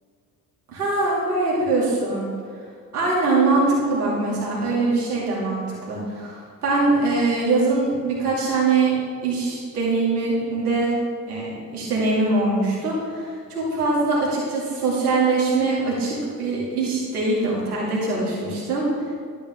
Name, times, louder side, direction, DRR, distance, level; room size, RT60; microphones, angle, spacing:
voice 1, 0.7-2.3 2.9-10.9 11.3-18.9, right 3 dB, 80° right, -5 dB, 2.6 m, -22 dB
12.0 x 8.7 x 3.6 m, 2.1 s
figure-of-eight pair, 50°, 45 cm